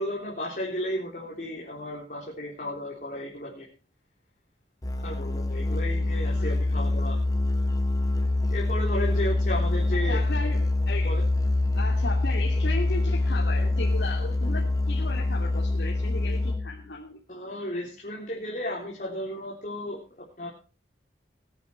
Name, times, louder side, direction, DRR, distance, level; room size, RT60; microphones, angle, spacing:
voice 1, 0.0-3.7 5.0-7.2 8.5-10.2 11.0-11.2 17.3-20.0 20.4-20.5, left 1 dB, 45° left, -3 dB, 3.6 m, -34 dB
Musical instrument, 4.8-16.8, left 2 dB, 20° left, 1.2 m, -25 dB
voice 2, 9.9-11.2 11.7-17.2, left 2 dB, 75° left, -2 dB, 2.7 m, -36 dB
20.0 x 9.3 x 4.6 m, 0.35 s
head